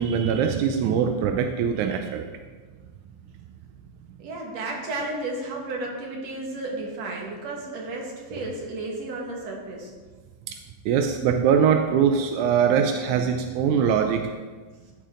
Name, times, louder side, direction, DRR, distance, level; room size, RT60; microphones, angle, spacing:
voice 1, 0.0-2.3 10.5-10.6 10.9-14.3, right 7 dB, 90° right, 5 dB, 2.1 m, -22 dB
voice 2, 4.2-9.9, right 2 dB, 65° right, -1 dB, 2.9 m, -33 dB
13.5 x 7.1 x 3.8 m, 1.4 s
omnidirectional pair, 3.3 m